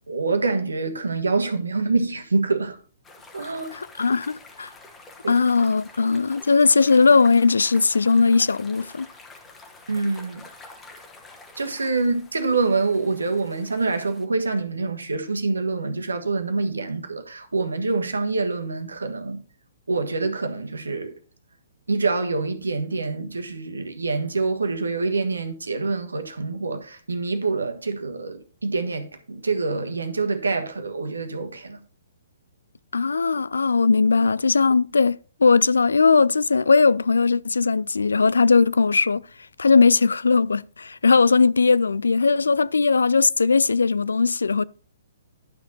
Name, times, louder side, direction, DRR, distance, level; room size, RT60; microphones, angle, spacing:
voice 1, 0.1-2.8 3.3-3.8 5.2-5.4 9.9-10.4 11.6-19.4 19.9-21.1 21.9-31.8, right 3 dB, 75° right, 1.4 m, -26 dB
sound 1, 3.0-14.3, left 3 dB, 15° left, 1.4 m, -47 dB
voice 2, 3.7-4.7 5.3-9.1 32.9-39.2 39.6-44.6, left 4 dB, 70° left, 0.3 m, -19 dB
11.5 x 6.4 x 3.9 m
figure-of-eight pair, 125°, 0 cm